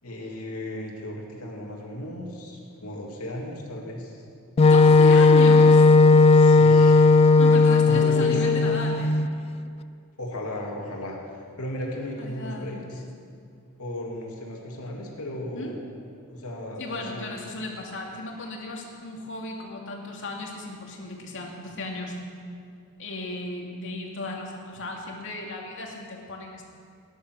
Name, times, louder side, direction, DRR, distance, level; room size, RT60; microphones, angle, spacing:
voice 1, 0.0-4.2 6.3-7.1 7.5-8.4 10.2-13.0 13.8-15.8 16.3-17.3, left 1 dB, 75° left, -1 dB, 2.7 m, -35 dB
voice 2, 4.6-5.8 7.4-9.1 12.2-12.7 13.3-13.4 15.5-15.7 16.8-22.2 23.0-26.7, left 1 dB, 55° left, -1 dB, 2.5 m, -35 dB
Wind instrument woodwind instrument, 4.6-9.3, left 3 dB, 25° left, 0.3 m, -16 dB
18.0 x 11.0 x 6.3 m, 2.3 s
head